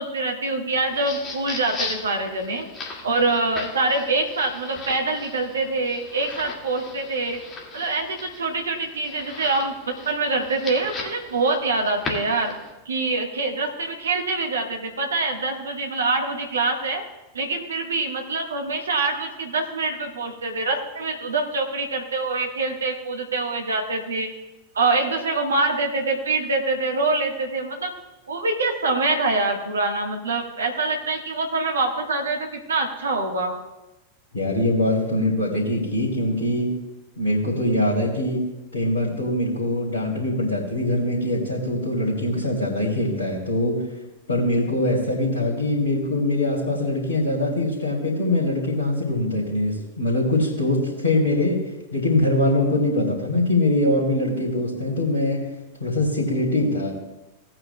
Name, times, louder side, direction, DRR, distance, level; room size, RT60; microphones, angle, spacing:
voice 1, 0.0-2.7 3.0-7.4 7.7-12.5 12.8-17.0 17.3-24.3 24.7-27.9 28.3-33.5, right 3 dB, 70° right, 3 dB, 1.4 m, -25 dB
sound 1, 0.7-12.7, left 3 dB, 25° left, 2.0 m, -37 dB
voice 2, 34.3-36.7 37.2-38.4 38.7-43.8 44.3-51.6 51.9-55.5 55.8-56.9, left 1 dB, 75° left, -7 dB, 2.6 m, -23 dB
18.0 x 8.8 x 2.2 m, 1.0 s
figure-of-eight pair, 90°, 0 cm